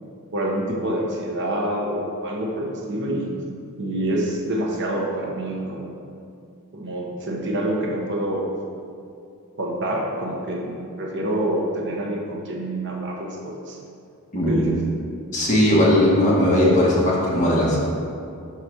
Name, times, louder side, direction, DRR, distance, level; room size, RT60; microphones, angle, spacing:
voice 1, 0.3-3.4 3.8-5.9 6.7-8.5 9.6-13.8 14.5-14.8, right 1 dB, 50° right, -1 dB, 1.0 m, -27 dB
voice 2, 15.3-17.8, left 1 dB, 35° left, -6 dB, 1.6 m, -18 dB
5.8 x 4.1 x 6.2 m, 2.5 s
head